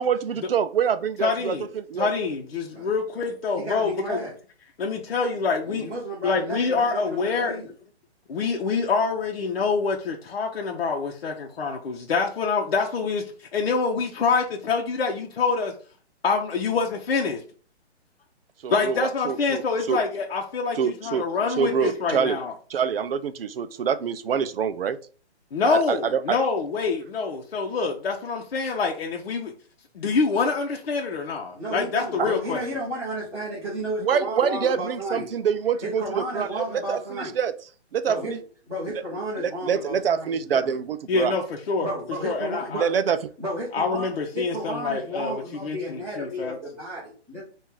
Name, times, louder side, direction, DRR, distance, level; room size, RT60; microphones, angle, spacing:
voice 1, 0.0-2.1 18.6-19.6 19.9-20.0 20.8-21.2 21.6-22.4 22.7-25.0 25.6-26.4 32.2-32.3 34.0-37.0 37.4-37.5 37.9-38.4 39.4-41.3 42.8-43.2, right 7 dB, 55° right, 12 dB, 0.5 m, -25 dB
voice 2, 1.2-1.7 2.0-4.2 4.8-5.9 6.2-7.6 8.3-15.7 16.2-17.4 18.7-22.5 25.5-29.5 29.9-32.6 41.1-41.9 42.2-42.8 43.7-46.6, left 4 dB, 60° left, 0 dB, 0.8 m, -26 dB
voice 3, 3.5-4.3 5.6-7.7 31.5-35.3 35.8-37.3 38.0-38.4 38.6-40.8 41.8-42.9 43.4-47.4, right 1 dB, 5° right, -14 dB, 1.2 m, -33 dB
4.3 x 2.5 x 3.7 m, 0.40 s
hypercardioid pair, 165°, 34 cm